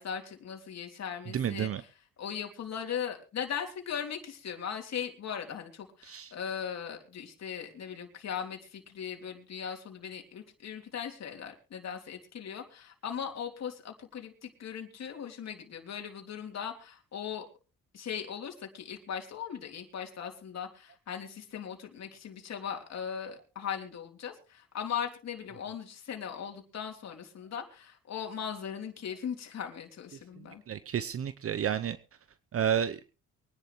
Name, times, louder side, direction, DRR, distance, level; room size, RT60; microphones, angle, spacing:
voice 1, 0.0-1.9 2.2-17.5 17.9-30.6, left 8 dB, 60° left, 3 dB, 3.4 m, -39 dB
voice 2, 1.3-1.8 6.0-6.3 30.7-32.0 32.5-33.0, right 9 dB, 50° right, 13 dB, 0.8 m, -30 dB
23.5 x 10.5 x 3.1 m, 0.33 s
cardioid pair, 90°, 30 cm